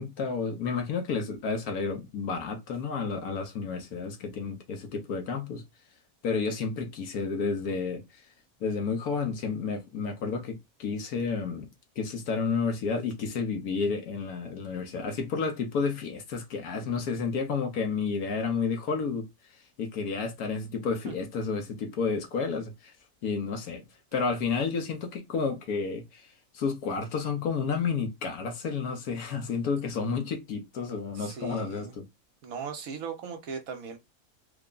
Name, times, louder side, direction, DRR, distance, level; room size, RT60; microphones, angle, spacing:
voice 1, 0.0-5.6 6.2-8.2 8.6-19.3 19.8-22.9 23.2-23.8 24.1-32.1, left 5 dB, 70° left, 1.3 m, -31 dB
voice 2, 31.1-31.9 32.4-34.0, right 6 dB, 65° right, 1.2 m, -38 dB
3.5 x 2.1 x 3.7 m
omnidirectional pair, 1.7 m